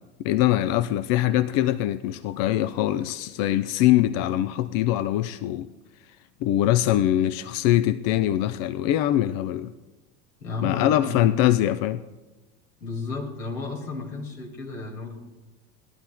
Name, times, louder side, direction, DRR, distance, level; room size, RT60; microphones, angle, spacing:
voice 1, 0.2-5.7 6.4-9.7 10.6-12.0, left 13 dB, 50° left, 0.5 m, -23 dB
voice 2, 10.4-11.3 12.8-15.2, left 4 dB, 85° left, 2.3 m, -33 dB
19.0 x 11.5 x 2.2 m
hypercardioid pair, 75°, 45 cm